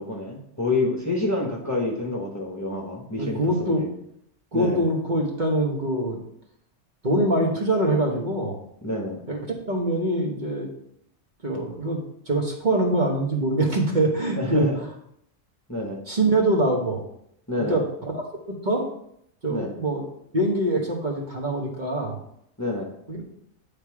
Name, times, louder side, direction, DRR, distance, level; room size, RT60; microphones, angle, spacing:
voice 1, 0.0-3.9 4.5-4.8 8.8-9.2 14.4-14.8 15.7-16.0 17.5-17.8 19.5-19.7 22.6-22.9, left 2 dB, 15° left, -1 dB, 1.0 m, -28 dB
voice 2, 3.2-3.8 4.5-6.2 7.0-8.6 9.3-9.4 9.7-10.7 11.4-12.0 12.3-14.7 16.1-17.0 17.7-18.2 18.6-18.8 19.4-20.0 20.3-22.2 23.1-23.2, right 1 dB, 40° right, -1 dB, 1.3 m, -24 dB
9.1 x 3.5 x 4.7 m, 0.72 s
omnidirectional pair, 1.3 m